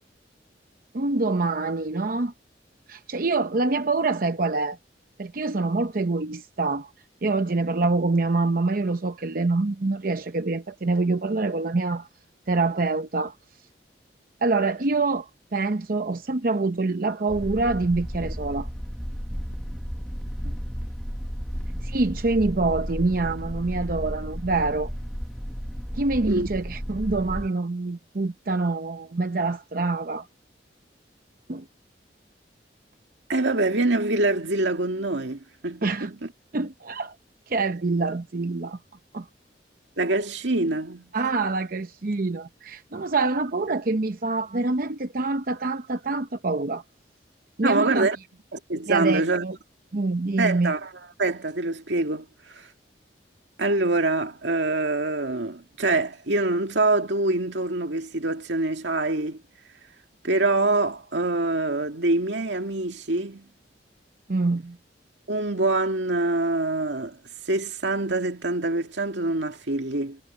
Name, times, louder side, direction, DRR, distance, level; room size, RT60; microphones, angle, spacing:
voice 1, 0.9-2.3 2.9-4.8 5.2-6.9 7.2-12.1 12.5-13.3 14.4-18.7 21.8-24.9 25.9-30.3 31.5-31.6 35.8-36.1 36.5-37.1 37.5-38.8 39.1-39.3 41.1-46.8 47.6-48.1 48.9-49.5 49.9-50.7 64.3-64.8, right 3 dB, 50° right, 0.7 m, -25 dB
sound 1, 17.3-27.5, equal, ahead, 1.1 m, -33 dB
voice 2, 33.3-36.3 40.0-41.1 47.6-48.2 48.5-49.5 50.4-50.9 51.2-52.3 52.5-52.7 53.6-59.4 60.2-63.5 65.3-67.2 67.5-70.2, right 2 dB, 90° right, 2.2 m, -25 dB
head